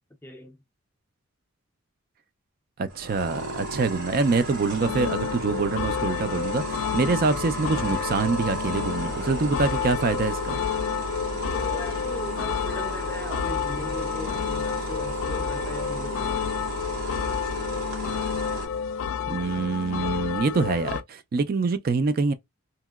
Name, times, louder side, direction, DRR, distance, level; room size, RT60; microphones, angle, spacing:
voice 1, 0.2-0.6 6.9-7.1 11.3-16.5, left 2 dB, 10° left, 0.5 m, -39 dB
voice 2, 2.8-10.6 19.3-22.3, right 4 dB, 45° right, 0.3 m, -25 dB
sound 1, 2.9-18.6, equal, 80° right, 1.6 m, -33 dB
sound 2, 4.8-21.0, left 8 dB, 65° left, 0.3 m, -30 dB
2.9 x 2.8 x 2.2 m
head